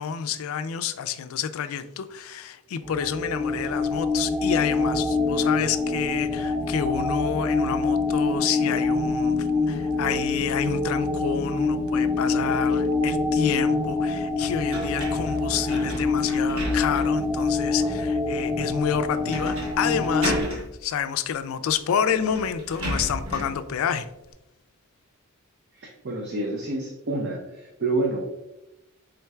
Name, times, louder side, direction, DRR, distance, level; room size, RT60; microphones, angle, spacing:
voice 1, 0.0-24.1, left 8 dB, 65° left, 11 dB, 0.3 m, -29 dB
sound 1, 2.8-20.4, left 3 dB, 5° right, 0.5 m, -25 dB
sound 2, 14.7-17.3 17.8-17.9 19.3-19.8 20.0-20.7 21.7-21.8 22.1-23.6, equal, 70° right, 1.4 m, -33 dB
voice 2, 25.8-28.3, right 2 dB, 50° right, 0 dB, 0.5 m, -28 dB
4.3 x 3.8 x 2.3 m, 0.91 s
head